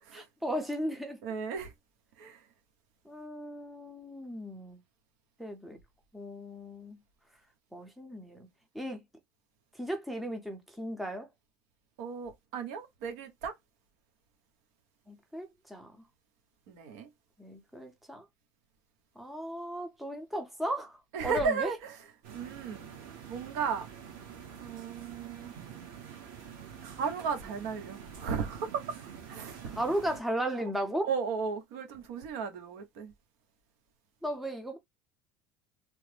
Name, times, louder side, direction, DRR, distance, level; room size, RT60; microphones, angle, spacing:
voice 1, 0.4-1.2 3.0-4.8 5.4-5.8 6.1-7.0 7.7-8.5 8.7-9.0 9.7-11.3 15.1-16.0 17.4-18.3 19.2-21.7 29.6-31.1 34.2-34.8, right 1 dB, ahead, 0.6 m, -36 dB
voice 2, 1.2-1.7 2.2-2.4 12.0-13.5 16.7-17.1 21.1-21.8 22.3-22.9 23.3-23.9 24.6-25.5 26.8-29.0 29.3-29.8 31.0-33.1, right 6 dB, 85° right, 1.0 m, -35 dB
sound 1, 22.2-30.2, right 7 dB, 65° right, 1.3 m, -47 dB
3.2 x 2.0 x 3.3 m
cardioid pair, 160°, 8 cm